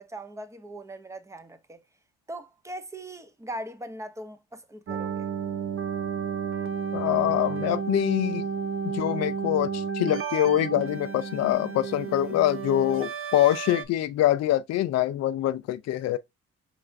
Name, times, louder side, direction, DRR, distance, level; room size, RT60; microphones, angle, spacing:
voice 1, 0.0-1.8 2.3-5.3, right 1 dB, 10° right, 0.6 m, -40 dB
sound 1, 4.9-13.8, right 6 dB, 45° right, 0.7 m, -32 dB
voice 2, 6.9-8.4 8.9-16.2, left 13 dB, 60° left, 0.4 m, -24 dB
4.8 x 3.3 x 2.5 m
cardioid pair, 90°, 30 cm